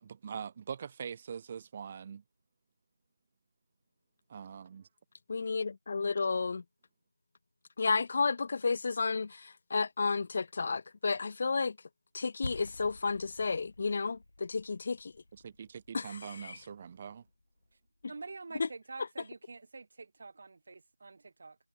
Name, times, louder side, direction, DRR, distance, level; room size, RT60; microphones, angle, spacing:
voice 1, 0.0-2.2 4.3-4.9 15.3-17.2, right 7 dB, 20° right, 1.0 m, -43 dB
voice 2, 5.3-6.6 7.8-11.8 12.1-15.1 15.9-16.2 16.4-16.6 18.6-18.7, left 4 dB, 30° left, 0.4 m, -32 dB
sound 1, 12.4-18.2, left 2 dB, 60° left, 1.9 m, -48 dB
voice 3, 18.1-21.6, right 3 dB, 35° right, 3.0 m, -47 dB
figure-of-eight pair, 175°, 0 cm